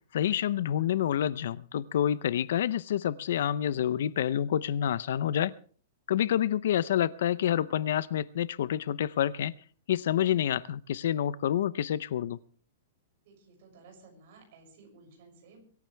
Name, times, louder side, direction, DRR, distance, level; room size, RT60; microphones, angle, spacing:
voice 1, 0.1-5.5 6.1-9.5 9.9-12.4, left 10 dB, 55° left, 0.6 m, -28 dB
voice 2, 13.2-15.6, right 3 dB, 40° right, 6.8 m, -55 dB
23.5 x 14.0 x 3.4 m
supercardioid pair, 180°, 0 cm